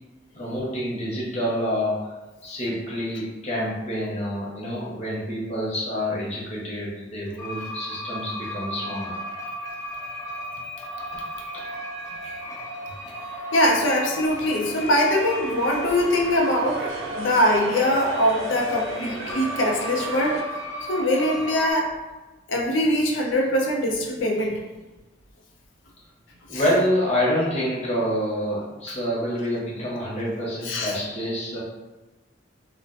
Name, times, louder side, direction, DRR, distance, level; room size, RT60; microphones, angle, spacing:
voice 1, 0.4-2.1 2.4-9.2 11.5-11.6 26.5-31.6, equal, 35° left, -6 dB, 0.8 m, -27 dB
sound 1, 7.4-21.7, equal, 15° left, 0.4 m, -35 dB
voice 2, 13.5-20.5 20.9-21.9 22.5-24.6 26.5-26.6 28.9-29.0 30.6-30.9, left 1 dB, 80° left, 0 dB, 0.5 m, -22 dB
sound 2, 14.3-20.4, right 3 dB, 90° right, 0.3 m, -37 dB
2.3 x 2.1 x 2.5 m, 1.1 s
head